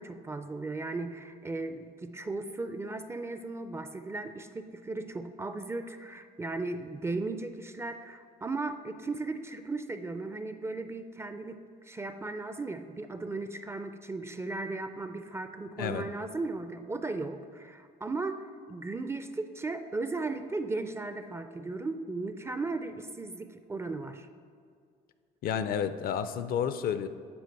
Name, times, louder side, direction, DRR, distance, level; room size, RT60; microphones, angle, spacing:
voice 1, 0.0-24.3, right 3 dB, 15° right, 9 dB, 0.4 m, -36 dB
voice 2, 25.4-27.1, left 8 dB, 60° left, 12 dB, 0.4 m, -30 dB
8.5 x 4.7 x 4.5 m, 2.2 s
cardioid pair, 110°, 17 cm